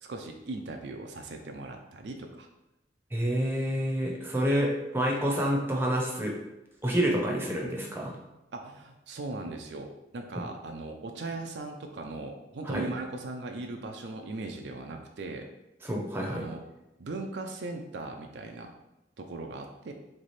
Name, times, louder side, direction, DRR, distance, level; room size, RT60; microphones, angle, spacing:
voice 1, 0.0-2.5 8.5-15.5 16.3-16.6 17.0-18.7 19.2-19.9, right 2 dB, 65° right, 3 dB, 0.4 m, -39 dB
voice 2, 3.1-6.4 6.8-8.1 10.4-10.5 12.7-12.9 15.8-16.4, equal, 10° right, -1 dB, 0.7 m, -28 dB
3.6 x 3.3 x 4.1 m, 0.94 s
head